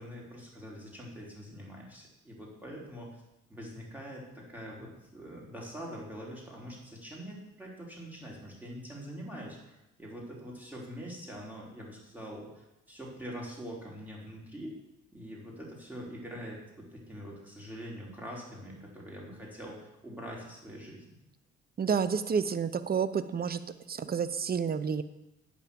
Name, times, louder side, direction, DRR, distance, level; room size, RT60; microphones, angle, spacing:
voice 1, 0.0-3.2 3.5-14.7 15.1-21.0, equal, 5° right, -4 dB, 3.6 m, -44 dB
voice 2, 21.8-23.6 23.9-25.0, right 6 dB, 30° right, 13 dB, 0.7 m, -29 dB
8.9 x 5.9 x 6.9 m, 0.91 s
cardioid pair, 90°, 30 cm